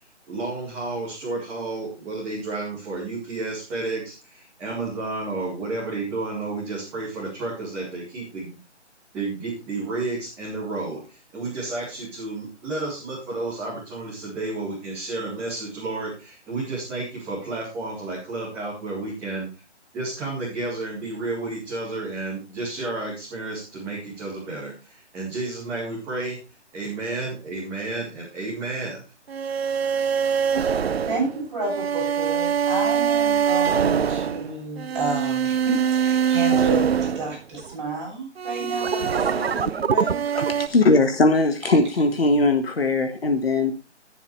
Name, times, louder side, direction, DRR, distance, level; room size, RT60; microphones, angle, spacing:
voice 1, 0.3-8.6 9.1-19.5 19.9-26.4 26.7-29.0, right 2 dB, 5° right, -10 dB, 2.1 m, -31 dB
sound 1, 29.3-37.8 38.4-40.7, right 7 dB, 60° right, 0.6 m, -23 dB
voice 2, 31.0-40.2, right 3 dB, 25° right, -4 dB, 7.0 m, -30 dB
voice 3, 40.6-43.7, left 2 dB, 55° left, 6 dB, 1.7 m, -19 dB
16.5 x 7.2 x 3.3 m, 0.32 s
hypercardioid pair, 175°, 35 cm